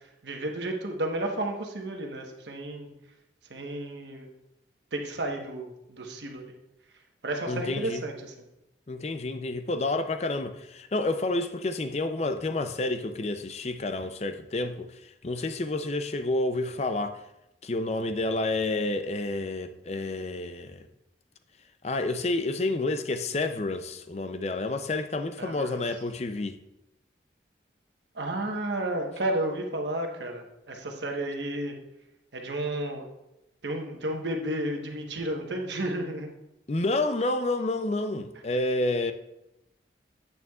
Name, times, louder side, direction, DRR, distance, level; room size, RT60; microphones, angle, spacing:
voice 1, 0.2-2.9 3.5-4.3 4.9-6.5 7.2-8.3 15.3-15.4 25.4-25.8 28.1-31.7 32.3-33.1 33.6-36.3, right 1 dB, 80° right, 1.2 m, -32 dB
voice 2, 7.5-8.0 8.9-17.2 17.6-20.9 21.8-26.6 36.7-39.1, left 2 dB, 35° left, 0.5 m, -29 dB
9.1 x 9.0 x 2.4 m
head